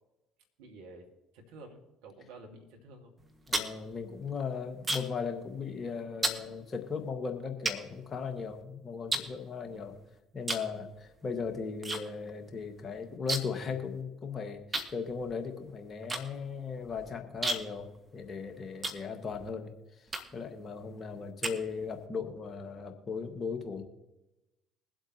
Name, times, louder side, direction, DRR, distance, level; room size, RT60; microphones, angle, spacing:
voice 1, 0.6-1.1 1.3-3.1, right 2 dB, 70° right, 3 dB, 2.0 m, -50 dB
sound 1, 3.2-5.3 5.5-5.8 6.2-6.5 7.1-7.2 7.7-8.6 9.1-10.0 10.4-10.7 11.0-12.0 12.3-12.4 12.6-13.7 13.9-14.0 14.7-19.5 20.1-20.5 21.0-22.1, right 2 dB, 25° right, 1.8 m, -35 dB
voice 2, 3.5-10.0 10.3-23.8, left 5 dB, 40° left, 6 dB, 1.7 m, -37 dB
22.5 x 7.8 x 3.0 m, 0.99 s
hypercardioid pair, 55°, 0 cm